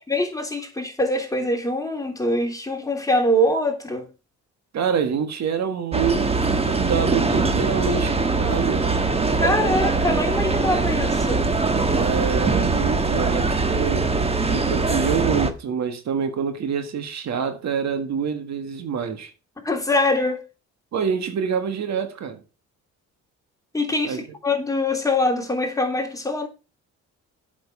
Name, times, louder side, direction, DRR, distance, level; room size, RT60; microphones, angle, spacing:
voice 1, 0.1-4.1 9.3-11.5 19.6-20.4 23.7-26.5, left 1 dB, 10° left, 3.1 m, -23 dB
voice 2, 4.7-8.9 11.9-14.1 14.5-19.3 20.9-22.4 24.0-24.2, right 7 dB, 65° right, 1.7 m, -26 dB
sound 1, 5.9-15.5, right 3 dB, 20° right, 1.4 m, -22 dB
8.2 x 6.3 x 5.5 m
cardioid pair, 90°, 30 cm